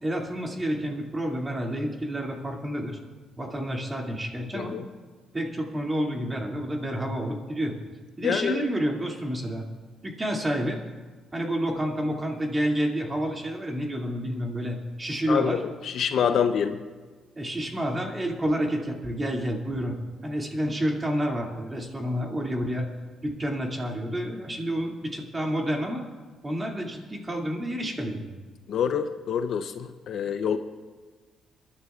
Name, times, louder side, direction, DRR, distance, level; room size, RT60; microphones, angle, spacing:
voice 1, 0.0-3.0 3.4-4.8 5.3-7.7 8.2-9.6 10.0-10.8 11.3-15.6 16.1-16.6 17.4-20.0 20.2-22.9 23.2-26.1 26.4-28.3, equal, 20° right, 0 dB, 2.4 m, -29 dB
voice 2, 4.5-4.9 8.2-8.6 15.3-15.6 15.8-16.8 28.7-30.6, left 7 dB, 65° left, 9 dB, 0.7 m, -26 dB
29.0 x 11.0 x 2.4 m, 1.4 s
cardioid pair, 90°, 0 cm